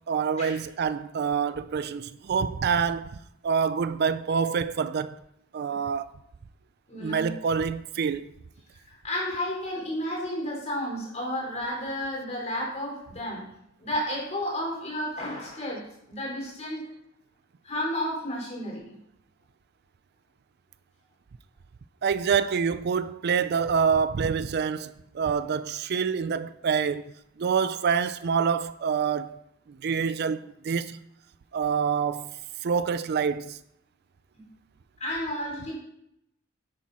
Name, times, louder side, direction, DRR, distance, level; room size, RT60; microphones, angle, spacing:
voice 1, 0.1-3.2 3.4-5.2 5.5-6.1 7.0-8.3 22.0-27.1 27.4-29.4 29.8-31.0 31.5-32.3 32.6-33.6, right 6 dB, 55° right, 0.4 m, -26 dB
voice 2, 6.9-7.3 8.8-13.4 13.8-15.8 16.1-16.8 17.6-18.8 34.3-34.4 35.0-35.8, left 1 dB, 35° left, 4.2 m, -32 dB
10.5 x 8.5 x 4.2 m
head